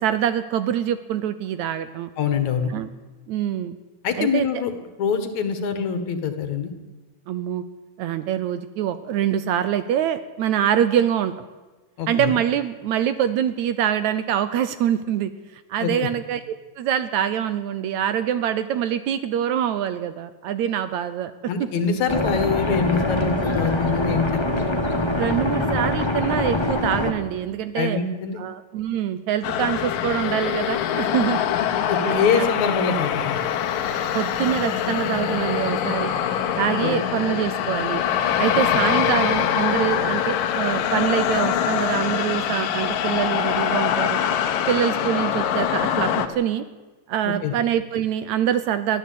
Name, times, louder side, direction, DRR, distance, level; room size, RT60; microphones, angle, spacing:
voice 1, 0.0-2.1 2.7-2.9 3.3-3.8 4.2-4.5 7.3-7.6 8.0-11.5 12.1-15.3 15.7-21.3 25.2-28.0 28.4-31.4 32.0-32.5 34.1-36.1 36.6-38.0 38.4-44.2 44.7-46.6 47.1-49.0, right 10 dB, 70° right, 12 dB, 1.9 m, -24 dB
voice 2, 2.2-2.7 4.0-4.7 5.0-6.7 12.0-12.3 15.8-16.1 21.5-24.8 27.8-28.4 31.9-33.4 36.8-37.0 47.2-47.5, left 6 dB, 60° left, 9 dB, 2.8 m, -24 dB
sound 1, 22.1-27.1, left 1 dB, 35° left, 0.4 m, -24 dB
sound 2, 29.4-46.3, left 9 dB, 85° left, 2.9 m, -24 dB
22.0 x 14.0 x 8.6 m, 1.2 s
omnidirectional pair, 3.8 m